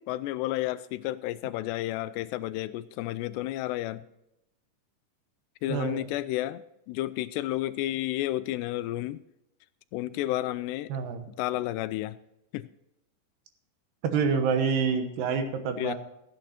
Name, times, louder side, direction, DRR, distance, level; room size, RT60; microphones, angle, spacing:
voice 1, 0.1-4.0 5.6-9.2 9.9-10.9 11.4-12.2 12.5-12.7 15.8-15.9, left 15 dB, 85° left, 14 dB, 2.6 m, -31 dB
voice 2, 5.7-6.1 10.9-11.3 14.0-16.0, right 5 dB, 75° right, 7 dB, 3.1 m, -27 dB
14.5 x 9.2 x 4.3 m, 0.83 s
omnidirectional pair, 5.0 m